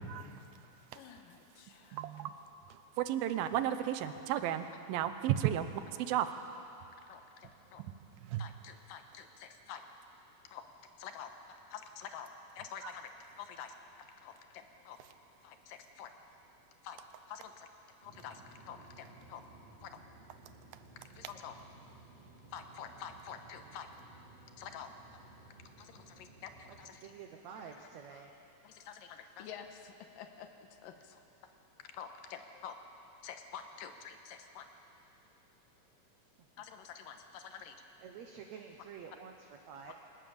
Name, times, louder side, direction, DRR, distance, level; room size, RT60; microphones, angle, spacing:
voice 1, 0.9-2.1 3.4-3.5 4.1-4.2 4.4-4.5 7.1-7.8 8.4-9.8 10.5-10.6 11.0-11.3 11.7-12.3 12.6-13.8 14.2-15.0 15.4-16.1 16.8-17.0 17.3-17.7 18.0-19.4 19.8-20.0 21.1-21.6 22.5-23.9 24.6-24.9 25.8-27.1 27.7-27.8 28.1-28.3 28.6-30.5 30.8-31.2 31.8-32.8 33.2-34.6 36.6-37.8 39.9-40.0, left 8 dB, 75° left, 6 dB, 2.7 m, -48 dB
voice 2, 1.9-2.3 3.0-5.7 6.0-6.3 8.3-8.4, right 11 dB, 80° right, 10 dB, 2.7 m, -33 dB
sound 1, 18.0-26.9, right 3 dB, 45° right, 3.6 m, -57 dB
voice 3, 27.0-28.4 38.0-39.9, right 7 dB, 65° right, 3 dB, 1.9 m, -49 dB
24.5 x 18.5 x 7.1 m, 2.9 s
omnidirectional pair, 4.2 m